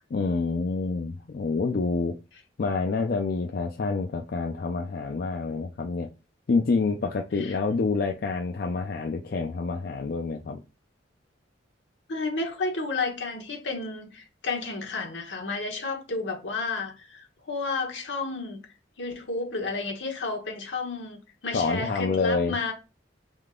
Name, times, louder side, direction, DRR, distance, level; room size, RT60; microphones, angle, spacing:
voice 1, 0.1-2.1 2.6-6.1 6.5-10.6 21.5-22.6, left 4 dB, 55° left, 0.4 m, -27 dB
voice 2, 12.1-18.6 19.0-22.7, left 3 dB, 75° left, 1.2 m, -31 dB
3.6 x 3.3 x 3.7 m
head